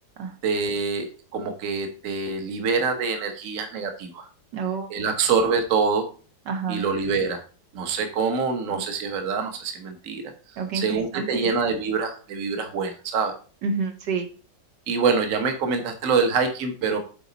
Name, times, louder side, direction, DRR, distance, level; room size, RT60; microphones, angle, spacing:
voice 1, 0.4-4.2 4.9-6.1 6.7-7.4 7.7-10.3 10.7-13.3 14.9-17.0, right 5 dB, 50° right, 6 dB, 1.3 m, -25 dB
voice 2, 4.5-5.0 6.5-6.8 8.7-8.8 10.6-11.5 13.6-14.3, right 5 dB, 75° right, 4 dB, 1.6 m, -29 dB
8.1 x 4.2 x 4.0 m, 0.37 s
omnidirectional pair, 1.9 m